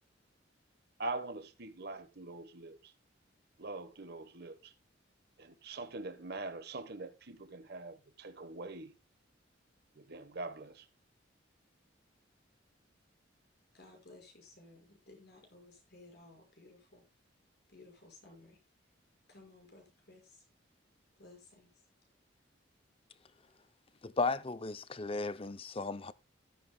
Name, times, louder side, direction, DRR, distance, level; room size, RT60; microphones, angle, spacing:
voice 1, 1.0-2.9 3.6-4.7 5.4-8.9 9.9-10.9, right 2 dB, 55° right, 1.2 m, -43 dB
voice 2, 13.7-17.0 17.7-18.6 19.3-20.5 21.2-21.7, left 2 dB, 55° left, 5.8 m, -57 dB
voice 3, 24.0-26.1, left 3 dB, 30° left, 0.6 m, -35 dB
14.0 x 13.0 x 2.3 m
head